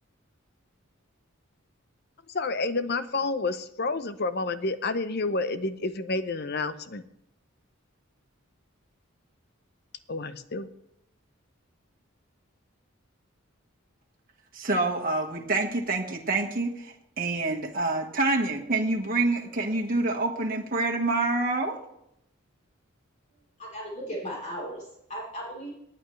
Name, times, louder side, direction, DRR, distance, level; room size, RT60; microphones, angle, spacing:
voice 1, 2.3-7.0 10.1-10.7, left 3 dB, 50° left, 11 dB, 0.7 m, -29 dB
voice 2, 14.5-21.8, right 2 dB, 45° right, 0 dB, 1.5 m, -27 dB
voice 3, 23.6-25.7, equal, 35° left, -4 dB, 3.7 m, -36 dB
18.5 x 9.2 x 3.2 m, 0.79 s
head